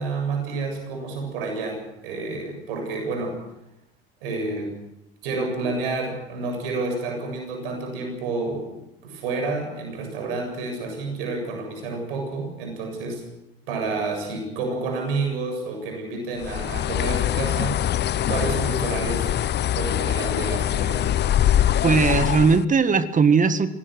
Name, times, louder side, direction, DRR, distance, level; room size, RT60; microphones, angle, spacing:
voice 1, 0.0-3.4 4.2-4.7 5.2-13.2 13.7-19.3 19.7-21.1, right 3 dB, 70° right, 4 dB, 7.6 m, -29 dB
Bird, 16.4-22.7, left 11 dB, 35° left, 0.7 m, -23 dB
voice 2, 21.8-23.7, right 5 dB, 25° right, 12 dB, 1.8 m, -18 dB
25.5 x 18.5 x 6.3 m, 0.88 s
hypercardioid pair, 65°, 30 cm